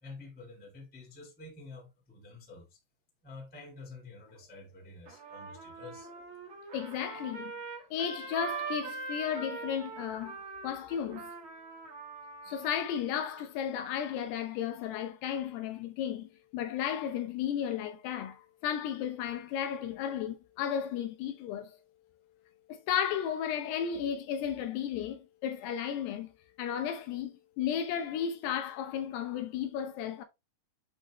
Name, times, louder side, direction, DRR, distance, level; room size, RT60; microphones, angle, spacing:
voice 1, 0.0-2.8 3.2-6.1, left 3 dB, 5° left, 0.7 m, -49 dB
Trumpet, 5.1-12.7, right 5 dB, 65° right, 1.2 m, -42 dB
voice 2, 6.7-7.5 7.9-10.4 10.6-11.3 12.5-21.8 22.7-26.3 26.6-30.2, left 9 dB, 80° left, 2.7 m, -34 dB
8.8 x 3.7 x 3.0 m
omnidirectional pair, 5.1 m